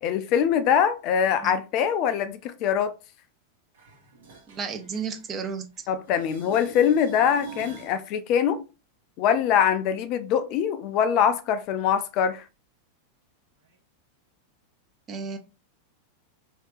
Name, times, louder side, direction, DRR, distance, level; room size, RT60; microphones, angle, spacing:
voice 1, 0.0-2.9 5.9-8.6 9.2-12.4, left 8 dB, 40° left, 0.4 m, -23 dB
sound 1, 3.7-5.8 6.1-8.0 13.7-13.8, right 4 dB, 65° right, 1.1 m, -45 dB
voice 2, 4.5-5.7 15.1-15.4, right 5 dB, 25° right, 0.6 m, -32 dB
3.2 x 2.8 x 3.4 m
figure-of-eight pair, 90°, 0 cm